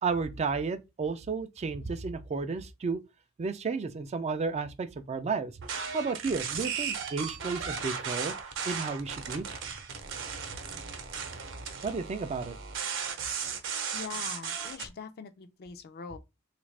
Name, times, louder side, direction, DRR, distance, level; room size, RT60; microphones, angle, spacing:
voice 1, 0.0-3.0 3.4-5.5 5.9-8.3 8.6-9.4 11.8-12.6, right 4 dB, 30° right, 0.3 m, -32 dB
sound 1, 5.6-14.9, right 6 dB, 60° right, 0.7 m, -36 dB
voice 2, 13.9-16.2, left 6 dB, 45° left, 0.4 m, -42 dB
3.4 x 2.5 x 3.2 m
head